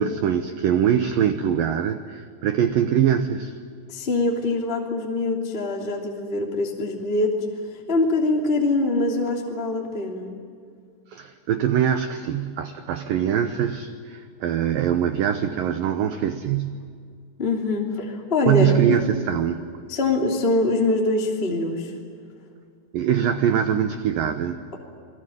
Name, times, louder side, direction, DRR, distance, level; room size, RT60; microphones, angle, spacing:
voice 1, 0.0-3.5 11.1-16.8 18.5-19.6 22.9-24.6, right 9 dB, 75° right, 8 dB, 2.1 m, -23 dB
voice 2, 3.9-7.4 7.7-10.3 17.4-19.0 19.9-21.9, left 2 dB, 15° left, 0 dB, 2.3 m, -24 dB
29.0 x 20.0 x 9.2 m, 2.2 s
omnidirectional pair, 5.3 m